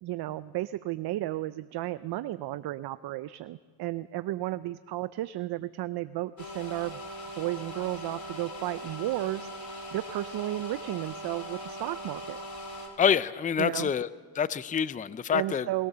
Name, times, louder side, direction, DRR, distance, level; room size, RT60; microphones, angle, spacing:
voice 1, 0.0-7.0 7.4-9.5 9.9-12.4 13.6-13.9 15.3-15.9, right 15 dB, 60° right, 14 dB, 0.6 m, -33 dB
sound 1, 6.4-12.9, equal, 40° left, 4.4 m, -40 dB
voice 2, 13.0-14.1 14.3-15.7, left 7 dB, 20° left, 16 dB, 0.5 m, -26 dB
21.0 x 18.5 x 6.9 m, 1.5 s
cardioid pair, 110°, 45 cm